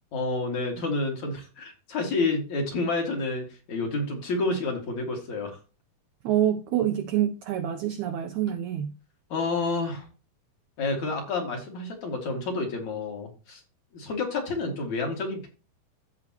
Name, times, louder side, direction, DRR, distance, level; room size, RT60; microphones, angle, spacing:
voice 1, 0.1-5.5 9.3-10.1 10.8-13.6 13.9-15.5, left 3 dB, 50° left, 3.1 m, -29 dB
voice 2, 6.2-8.9, right 11 dB, 85° right, 1.6 m, -26 dB
15.0 x 5.0 x 3.0 m
omnidirectional pair, 4.4 m